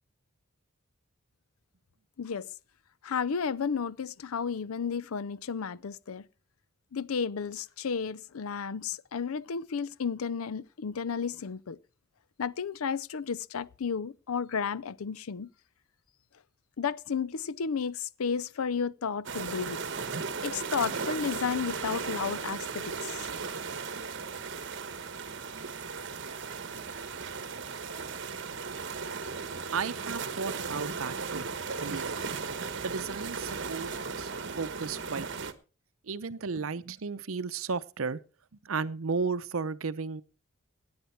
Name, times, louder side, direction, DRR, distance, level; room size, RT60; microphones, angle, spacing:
voice 1, 2.2-2.5 3.0-6.3 6.9-11.8 12.4-15.5 16.8-19.8 20.4-23.3, left 6 dB, 85° left, 0.5 m, -33 dB
sound 1, 19.2-35.5, right 5 dB, 55° right, 1.2 m, -36 dB
voice 2, 29.7-31.5 31.8-32.1 32.8-34.3 34.6-35.5 36.0-38.2 38.6-40.2, right 5 dB, 75° right, 0.7 m, -34 dB
17.0 x 9.6 x 4.5 m
head